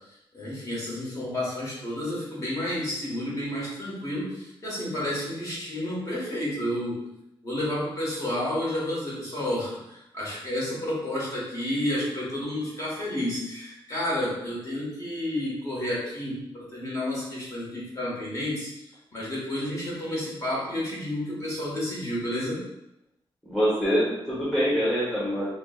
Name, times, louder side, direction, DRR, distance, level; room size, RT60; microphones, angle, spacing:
voice 1, 0.3-7.0 7.4-18.7 19.1-22.6, left 1 dB, 35° left, -6 dB, 1.3 m, -30 dB
voice 2, 23.4-25.5, equal, 5° left, -9 dB, 0.9 m, -25 dB
4.4 x 2.1 x 2.4 m, 0.87 s
wide cardioid pair, 145°, 9 cm